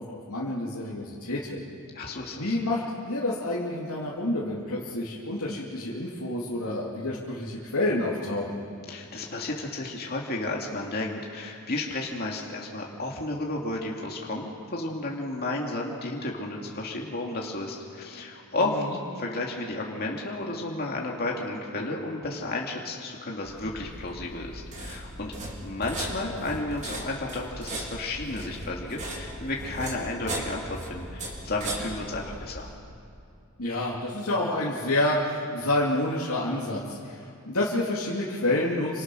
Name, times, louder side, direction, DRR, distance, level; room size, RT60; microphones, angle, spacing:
voice 1, 0.0-1.6 2.3-8.6 18.6-19.0 33.6-39.0, left 1 dB, 85° left, -6 dB, 2.9 m, -29 dB
voice 2, 1.9-2.6 8.9-18.8 19.1-25.3 25.6-32.7, left 2 dB, 45° left, -2 dB, 2.5 m, -32 dB
sound 1, 23.4-32.7, right 1 dB, 35° right, 4.0 m, -38 dB
28.5 x 25.5 x 6.3 m, 2.5 s
head